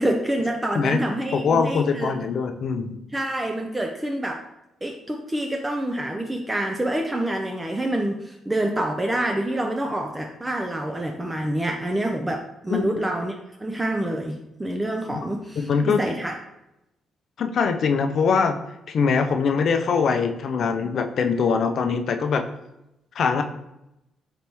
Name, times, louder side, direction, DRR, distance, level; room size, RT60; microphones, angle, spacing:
voice 1, 0.0-2.1 3.1-4.4 4.8-16.3, right 1 dB, 15° right, 2 dB, 0.4 m, -27 dB
voice 2, 1.3-3.0 12.7-12.9 15.1-15.2 15.6-16.0 17.4-18.6 18.9-22.5 23.2-23.4, left 5 dB, 60° left, 6 dB, 0.4 m, -22 dB
4.1 x 3.4 x 2.9 m, 0.88 s
cardioid pair, 90°, 0 cm